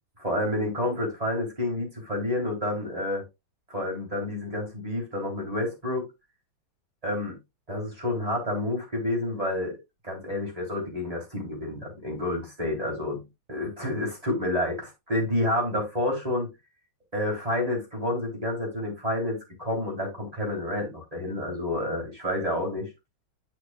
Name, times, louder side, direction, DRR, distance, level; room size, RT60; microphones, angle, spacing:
voice 1, 0.2-3.2 3.7-6.1 7.0-7.4 7.7-9.7 10.0-13.2 13.5-16.5 17.1-22.9, left 1 dB, 15° right, 3.7 m, -29 dB
9.5 x 6.4 x 2.4 m
omnidirectional pair, 2.2 m